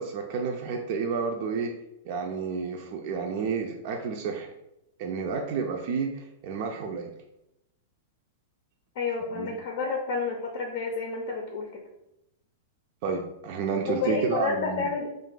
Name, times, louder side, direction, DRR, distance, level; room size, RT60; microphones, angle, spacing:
voice 1, 0.0-1.7 2.0-4.5 5.0-7.1 9.3-9.6 13.0-14.9, right 5 dB, 55° right, 2 dB, 0.4 m, -30 dB
voice 2, 9.0-11.8 13.9-15.1, left 4 dB, 60° left, 2 dB, 0.5 m, -30 dB
2.5 x 2.4 x 3.8 m, 0.86 s
hypercardioid pair, 105°, 0 cm